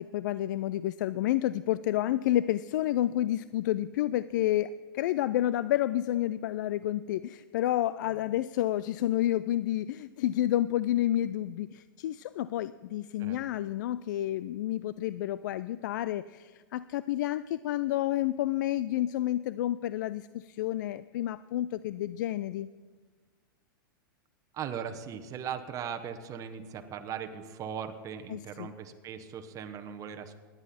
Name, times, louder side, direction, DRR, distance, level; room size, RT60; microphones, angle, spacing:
voice 1, 0.0-22.7 28.3-28.7, left 13 dB, 60° left, 16 dB, 0.4 m, -30 dB
voice 2, 24.5-30.4, right 8 dB, 30° right, 7 dB, 1.0 m, -39 dB
19.0 x 10.5 x 4.2 m, 1.4 s
hypercardioid pair, 105°, 11 cm